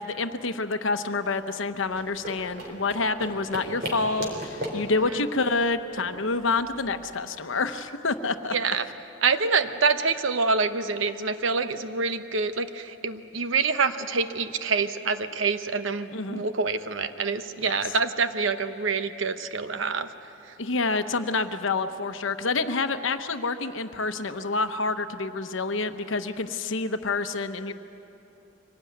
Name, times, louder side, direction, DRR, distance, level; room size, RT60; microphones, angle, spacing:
voice 1, 0.0-8.5 16.1-16.4 17.6-17.9 20.6-27.7, left 3 dB, 70° left, 9 dB, 1.0 m, -28 dB
sound 1, 1.8-7.0, equal, 55° right, 4.1 m, -37 dB
voice 2, 8.5-8.9 9.2-20.1, right 4 dB, 70° right, 10 dB, 0.9 m, -26 dB
24.0 x 18.0 x 9.4 m, 2.9 s
head